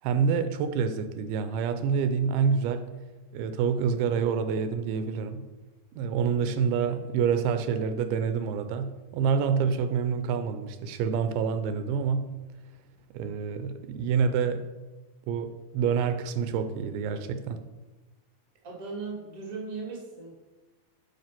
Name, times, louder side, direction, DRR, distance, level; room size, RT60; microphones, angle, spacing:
voice 1, 0.0-2.9 3.3-5.5 6.0-12.3 13.1-14.7 15.3-17.6, right 6 dB, 85° right, 9 dB, 2.5 m, -27 dB
voice 2, 18.6-20.3, right 4 dB, 30° right, -3 dB, 1.8 m, -37 dB
8.0 x 5.0 x 5.9 m, 1.1 s
omnidirectional pair, 4.3 m